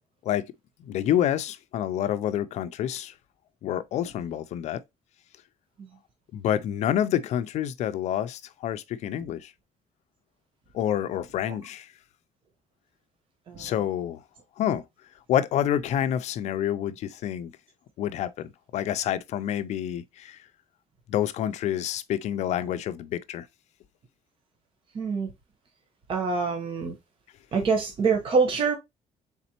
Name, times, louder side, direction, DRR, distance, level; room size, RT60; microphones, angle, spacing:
voice 1, 0.8-3.1 3.6-4.8 6.3-9.5 10.7-11.9 13.6-14.2 14.6-14.8 15.3-17.5 18.0-20.4 21.1-23.5, left 10 dB, 70° left, 0.4 m, -28 dB
voice 2, 24.9-25.3 26.1-26.9 27.5-28.7, right 5 dB, 45° right, 0.9 m, -25 dB
4.1 x 3.6 x 2.8 m
cardioid pair, 130°, 12 cm